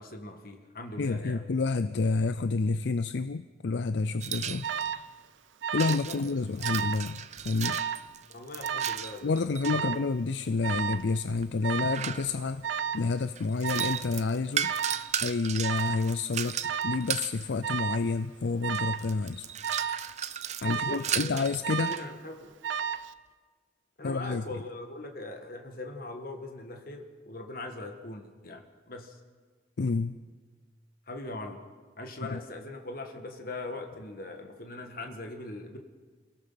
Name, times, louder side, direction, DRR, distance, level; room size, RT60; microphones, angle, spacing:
voice 1, 0.0-1.4 5.8-6.2 8.3-9.3 9.7-9.9 20.6-21.5 21.7-22.6 24.0-29.2 31.1-31.6 32.0-35.8, left 2 dB, 50° left, 4 dB, 1.9 m, -41 dB
voice 2, 1.0-4.7 5.7-7.8 9.2-12.6 12.9-14.7 15.2-19.5 20.6-21.9 24.0-24.4 29.8-30.2 32.3-32.4, left 4 dB, 70° left, 13 dB, 0.5 m, -29 dB
sound 1, 4.2-5.0 5.8-9.8 10.7-12.6 13.4-17.4 18.3-18.4 18.7-22.1, right 9 dB, 40° right, 0.7 m, -35 dB
Alarm, 4.6-5.1 5.6-6.1 6.4-7.1 7.6-8.1 8.6-9.1 9.6-10.1 10.6-11.1 11.6-12.1 12.6-13.1 13.6-14.1 14.6-15.1 15.6-16.1 16.6-17.1 17.6-18.1 18.6-19.1 19.6-20.1 20.6-21.1 21.6-22.1 22.6-23.1, right 7 dB, 90° right, 0.6 m, -32 dB
28.5 x 16.5 x 5.8 m, 1.5 s
head